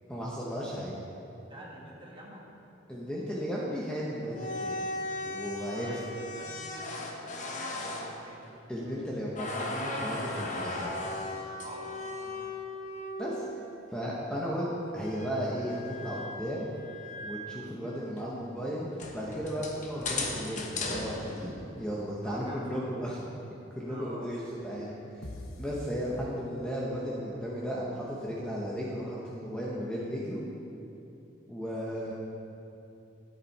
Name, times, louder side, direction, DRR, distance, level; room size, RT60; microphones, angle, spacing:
voice 1, 0.1-1.0 2.9-4.9 5.2-6.0 8.7-11.0 13.2-13.5 13.9-16.7 17.2-23.2 23.7-25.3 25.6-30.5 31.5-32.1, equal, 5° left, -6 dB, 1.0 m, -35 dB
voice 2, 1.4-2.4 5.7-8.6 11.6-12.6 22.2-22.8 23.8-24.3 32.0-32.1, right 1 dB, 25° right, -4 dB, 1.7 m, -48 dB
sound 1, 4.2-9.0 9.3-13.6 15.0-17.6 18.2-18.3 18.9-21.9, left 2 dB, 35° left, 0.9 m, -37 dB
sound 2, 25.2-27.0, left 1 dB, 85° left, 0.9 m, -44 dB
12.5 x 7.2 x 4.2 m, 2.8 s
head